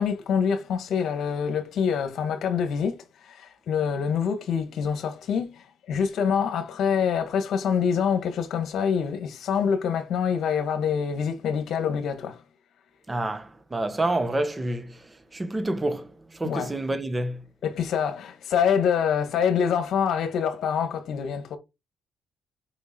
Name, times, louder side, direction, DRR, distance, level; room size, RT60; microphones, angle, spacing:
voice 1, 0.0-12.4 16.4-16.8 17.6-21.6, left 7 dB, 70° left, 1.8 m, -26 dB
voice 2, 13.1-15.0 15.3-17.4, right 1 dB, 20° right, 1.5 m, -28 dB
7.0 x 5.5 x 4.5 m
cardioid pair, 90°, 0 cm